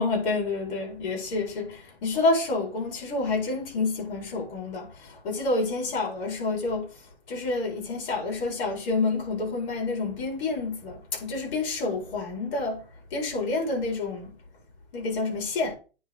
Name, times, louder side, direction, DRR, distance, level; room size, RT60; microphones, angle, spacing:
voice 1, 0.0-6.9 7.3-12.8 13.1-14.3 14.9-15.7, left 3 dB, 60° left, 4.5 m, -28 dB
9.3 x 3.6 x 4.5 m
hypercardioid pair, 130°, 31 cm